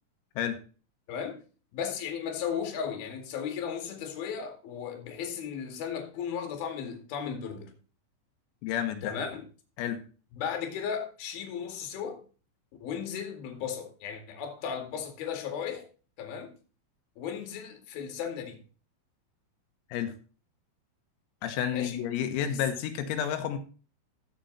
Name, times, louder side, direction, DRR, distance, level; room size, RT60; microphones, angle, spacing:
voice 1, 1.1-1.4 1.7-7.7 9.0-9.4 10.4-12.2 12.8-15.8 16.2-16.5 17.2-18.6 21.7-22.0 22.5-22.6, left 7 dB, 55° left, 3.6 m, -35 dB
voice 2, 8.6-9.2 9.8-10.0 19.9-20.1 21.4-23.6, left 9 dB, 85° left, 3.9 m, -30 dB
14.5 x 7.2 x 4.0 m
omnidirectional pair, 5.9 m